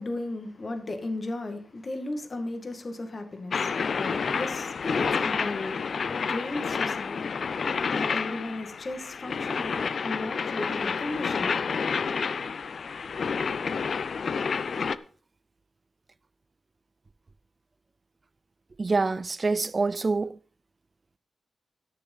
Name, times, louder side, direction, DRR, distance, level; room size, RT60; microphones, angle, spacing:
voice 1, 0.0-7.3 7.9-11.6, left 2 dB, 45° left, 2.2 m, -35 dB
sound 1, 3.5-15.0, left 5 dB, 65° left, 0.5 m, -29 dB
voice 2, 18.8-20.3, right 3 dB, 40° right, 0.4 m, -26 dB
13.5 x 6.7 x 5.5 m
cardioid pair, 80°, 0 cm